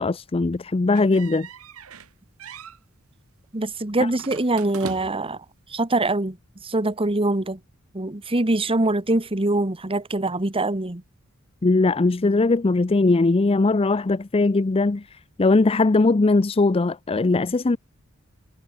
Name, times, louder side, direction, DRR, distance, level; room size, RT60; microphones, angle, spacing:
voice 1, 0.0-1.5 11.6-17.8, left 3 dB, 25° left, 0.5 m, -20 dB
sound 1, 0.9-2.1 2.4-2.8 4.2-5.4, right 5 dB, 80° right, 1.1 m, -39 dB
voice 2, 3.5-5.4 5.7-6.4 6.6-7.6 7.9-11.0, right 2 dB, 25° right, 1.5 m, -23 dB
head